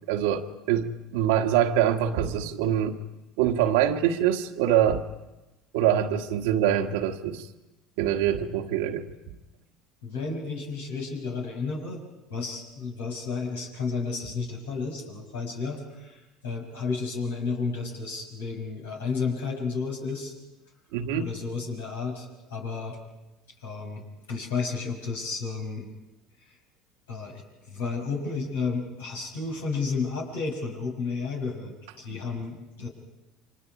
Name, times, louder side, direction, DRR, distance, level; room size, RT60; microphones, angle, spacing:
voice 1, 0.1-3.0 3.4-5.0 5.7-7.5 8.0-9.1 20.9-21.3, right 10 dB, 70° right, 6 dB, 1.4 m, -24 dB
voice 2, 10.0-12.0 12.3-20.3 21.2-23.0 23.6-25.9 27.1-32.9, left 4 dB, 80° left, 0 dB, 5.6 m, -32 dB
29.5 x 25.0 x 4.9 m, 1.0 s
hypercardioid pair, 70°, 0 cm